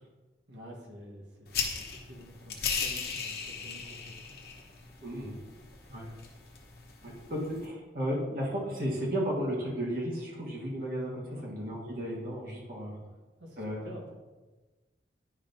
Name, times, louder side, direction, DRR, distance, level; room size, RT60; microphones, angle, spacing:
voice 1, 0.5-4.5 11.2-11.5 13.4-14.1, equal, 75° right, 0 dB, 1.4 m, -49 dB
sound 1, 1.5-7.7, left 6 dB, 55° left, 1.0 m, -37 dB
voice 2, 5.0-5.4 5.9-6.2 7.0-13.0 13.6-13.9, equal, 50° right, -4 dB, 1.7 m, -34 dB
9.8 x 5.3 x 2.7 m, 1.2 s
head